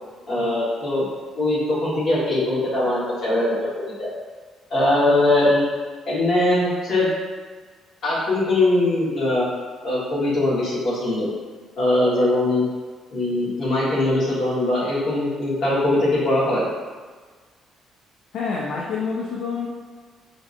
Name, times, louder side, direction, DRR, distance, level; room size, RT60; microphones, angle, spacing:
voice 1, 0.3-1.0 1.4-3.5 4.0-4.1 4.7-5.6 6.0-7.1 8.0-9.4 9.8-11.3 11.8-12.6 13.1-16.7, left 1 dB, 50° left, -8 dB, 1.5 m, -21 dB
voice 2, 18.3-19.7, left 5 dB, 65° left, -4 dB, 0.5 m, -27 dB
4.9 x 2.7 x 2.5 m, 1.5 s
cardioid pair, 160°, 0 cm